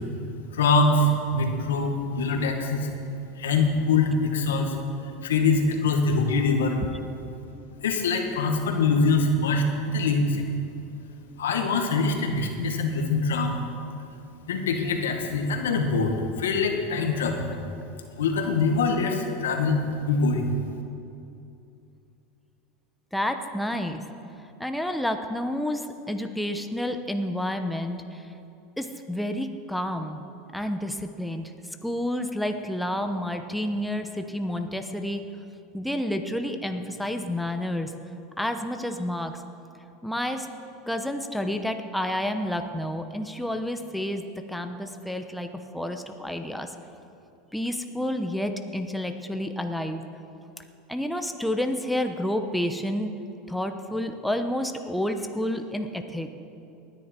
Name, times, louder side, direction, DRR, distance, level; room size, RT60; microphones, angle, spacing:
voice 1, 0.5-2.9 3.4-4.8 5.0-6.8 7.8-10.4 11.4-13.7 14.5-17.5 18.2-20.5, left 3 dB, 90° left, 4 dB, 1.7 m, -24 dB
voice 2, 23.1-24.0 24.6-28.3 28.8-30.2 30.5-31.5 31.8-35.2 35.7-37.9 38.4-39.4 40.0-40.5 40.9-44.2 44.5-46.8 47.5-50.0 50.9-53.1 53.5-56.3, left 1 dB, ahead, 6 dB, 1.0 m, -30 dB
19.0 x 10.0 x 4.5 m, 2.7 s
hypercardioid pair, 105°, 0 cm